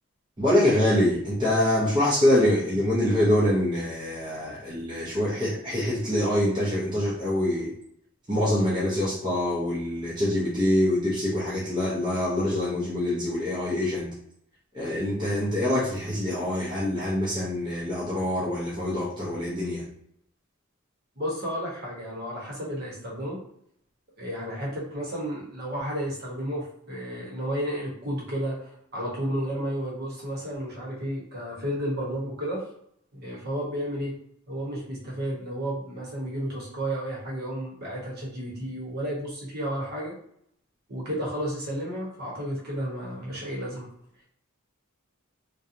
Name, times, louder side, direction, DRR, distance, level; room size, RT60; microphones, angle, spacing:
voice 1, 0.4-7.7 8.3-14.1 14.7-19.9, left 1 dB, 20° right, -7 dB, 0.6 m, -25 dB
voice 2, 21.2-23.4 24.2-28.7 28.9-32.6 33.1-34.1 34.5-40.1 40.9-43.9, equal, 50° right, -4 dB, 0.9 m, -32 dB
2.7 x 2.2 x 2.5 m, 0.69 s
head